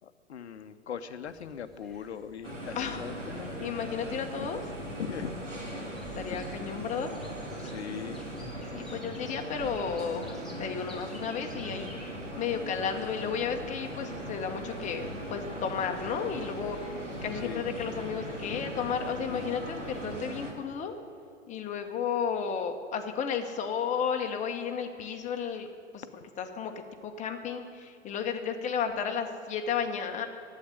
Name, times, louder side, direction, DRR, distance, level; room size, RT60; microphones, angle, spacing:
voice 1, 0.0-3.5 4.4-4.5 5.0-5.3 6.3-6.4 7.5-8.2 8.8-8.9 17.3-17.7 18.2-18.7, left 8 dB, 65° left, 11 dB, 0.9 m, -40 dB
sound 1, 1.2-15.0, left 2 dB, ahead, 2.0 m, -55 dB
sound 2, 2.4-20.5, right 1 dB, 85° right, 2.1 m, -39 dB
voice 2, 3.6-4.6 6.1-7.2 8.7-10.3 10.6-11.9 12.3-20.9 21.5-25.7 25.9-26.0 26.4-26.7 27.0-30.3, left 7 dB, 20° left, 5 dB, 1.1 m, -33 dB
sound 3, 4.8-11.2, right 2 dB, 30° right, 4.4 m, -52 dB
11.5 x 8.5 x 9.5 m, 2.4 s
figure-of-eight pair, 100°, 36 cm